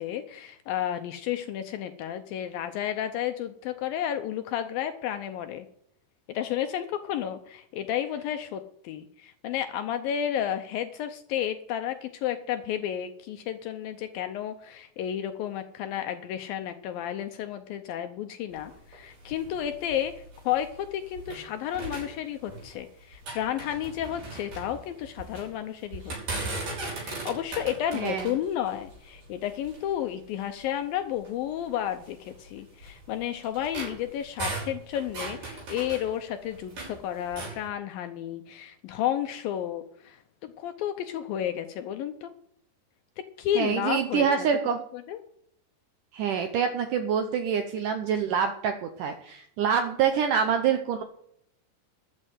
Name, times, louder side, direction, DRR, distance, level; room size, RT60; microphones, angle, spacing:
voice 1, 0.0-5.7 6.3-26.5 27.0-42.3 43.4-44.5 45.1-45.2, left 10 dB, 80° left, 8 dB, 2.2 m, -32 dB
sound 1, 18.5-21.5 21.7-22.8 23.1-25.5 25.9-29.9 30.6-30.7 31.1-31.3 32.0-37.0 37.3-37.6, right 2 dB, 55° right, 7.5 m, -38 dB
voice 2, 27.9-28.3 43.6-44.8 46.1-51.0, right 7 dB, 80° right, 7 dB, 1.9 m, -26 dB
13.5 x 6.5 x 9.2 m, 0.72 s
omnidirectional pair, 4.8 m